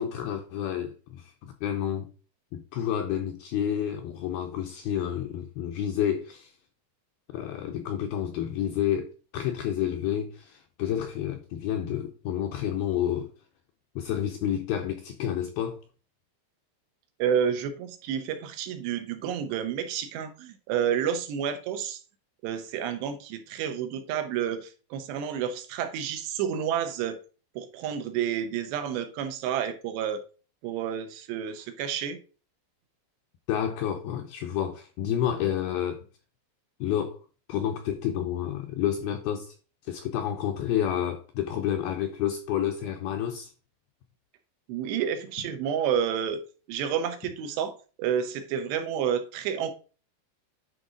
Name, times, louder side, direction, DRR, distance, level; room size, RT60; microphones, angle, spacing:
voice 1, 0.0-2.1 2.5-6.5 7.3-13.3 14.0-15.8 33.5-36.0 36.8-37.2 37.5-39.5 39.9-43.5, left 10 dB, 80° left, 2.2 m, -29 dB
voice 2, 17.2-22.0 22.4-27.2 27.6-30.2 30.6-32.2 44.7-46.4 46.7-47.7 48.0-49.7, right 8 dB, 80° right, 3.1 m, -30 dB
10.5 x 4.6 x 3.8 m
omnidirectional pair, 5.0 m